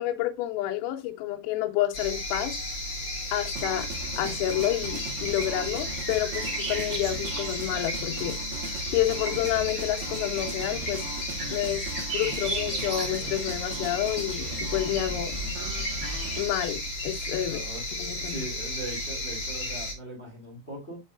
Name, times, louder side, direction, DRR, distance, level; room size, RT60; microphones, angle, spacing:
voice 1, 0.0-2.6 3.3-3.9 4.2-8.4 8.9-11.0 11.5-11.9 12.1-15.4 16.4-17.6 17.9-18.4, left 13 dB, 85° left, 3.5 m, -29 dB
sound 1, 1.9-19.9, left 1 dB, 60° left, 1.2 m, -34 dB
sound 2, 3.5-16.5, right 3 dB, 55° right, 3.0 m, -39 dB
sound 3, 4.6-16.8, right 3 dB, 35° right, 2.9 m, -39 dB
voice 2, 17.4-17.8 18.2-21.0, right 1 dB, 20° left, 1.8 m, -40 dB
7.4 x 5.5 x 2.4 m
omnidirectional pair, 6.0 m